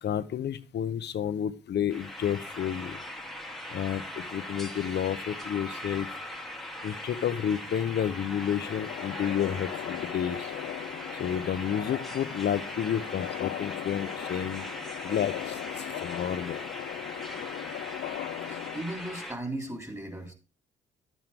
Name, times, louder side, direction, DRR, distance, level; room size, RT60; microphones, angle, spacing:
voice 1, 0.0-3.0 3.7-6.1 6.8-10.5 11.2-14.7 15.0-16.6, left 9 dB, 60° left, 13 dB, 1.0 m, -31 dB
sound 1, 1.9-19.3, left 1 dB, ahead, 1.7 m, -40 dB
sound 2, 8.6-18.8, left 14 dB, 80° left, 0.6 m, -38 dB
voice 2, 18.4-20.3, right 1 dB, 15° right, 4 dB, 3.5 m, -37 dB
12.0 x 9.2 x 3.6 m, 0.33 s
cardioid pair, 90°, 20 cm